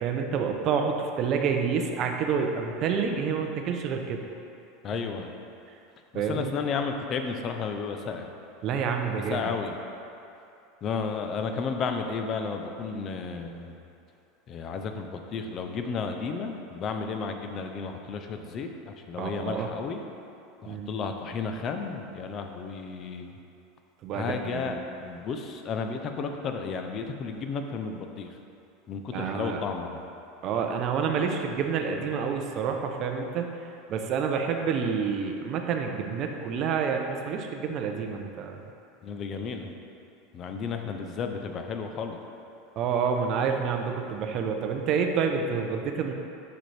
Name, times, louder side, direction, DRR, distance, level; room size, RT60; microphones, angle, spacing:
voice 1, 0.0-4.2 6.1-6.5 8.6-9.5 19.2-19.7 20.7-20.9 24.0-24.8 29.1-29.6 30.4-33.5 33.9-38.6 42.8-46.1, right 6 dB, 35° right, 4 dB, 0.5 m, -28 dB
voice 2, 4.8-5.3 6.3-8.3 9.3-9.8 10.8-13.8 14.5-20.0 20.6-23.3 24.1-28.3 28.9-30.0 39.0-39.7 40.3-42.2, left 5 dB, 30° left, 5 dB, 0.5 m, -33 dB
6.6 x 6.0 x 3.3 m, 2.7 s
supercardioid pair, 155°, 0 cm